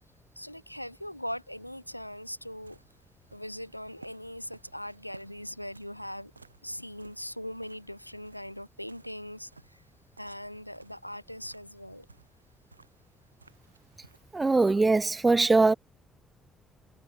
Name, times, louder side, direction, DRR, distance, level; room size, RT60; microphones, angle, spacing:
voice 1, 0.4-2.8 3.3-6.3 6.6-9.8 10.2-12.1, equal, 90° left, 0.6 m, -40 dB
sound 1, 2.2-14.8, right 3 dB, 85° right, 5.0 m, -58 dB
voice 2, 14.3-15.7, right 3 dB, 20° right, 0.7 m, -22 dB
figure-of-eight pair, 45°, 0 cm